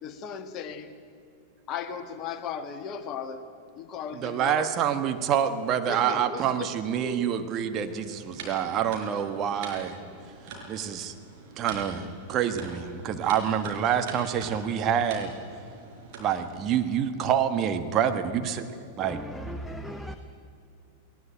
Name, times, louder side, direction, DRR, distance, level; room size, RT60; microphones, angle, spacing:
voice 1, 0.0-0.9 1.7-3.4 3.8-4.7 5.8-7.2, left 7 dB, 35° left, 9 dB, 1.6 m, -36 dB
voice 2, 4.2-10.0 10.7-11.1 11.6-15.3 16.2-18.7 19.0-19.2, right 8 dB, 35° right, 7 dB, 1.5 m, -27 dB
sound 1, 7.8-16.6, right 3 dB, 50° right, 5.4 m, -44 dB
voice 3, 19.0-20.2, equal, 5° left, 7 dB, 1.0 m, -37 dB
19.5 x 19.5 x 9.0 m, 2.5 s
figure-of-eight pair, 90°, 0 cm